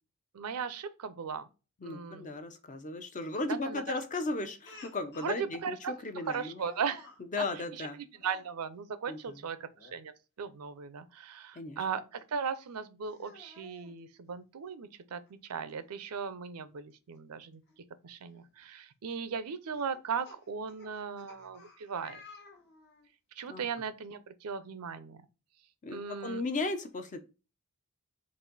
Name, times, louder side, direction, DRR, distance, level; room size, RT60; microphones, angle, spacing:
voice 1, 0.3-1.4 1.8-2.3 3.6-3.8 5.2-5.9 6.3-7.1 7.4-7.5 7.8-10.1 10.4-17.6 18.0-22.2 23.4-25.2 25.9-26.4, right 6 dB, 75° right, 0.5 m, -37 dB
voice 2, 1.8-6.6 7.3-8.0 9.1-9.5 11.5-11.8 23.5-23.6 25.8-27.2, left 3 dB, 35° left, 0.6 m, -36 dB
Speech, 4.6-5.4 6.2-7.2 8.1-8.5 9.7-10.0 10.4-10.5 12.2-12.3 13.1-13.9 15.3-15.4 15.7-15.8 17.7-17.8 18.4-18.6 19.7-23.1, left 3 dB, 50° left, 1.0 m, -53 dB
4.0 x 2.6 x 3.9 m
head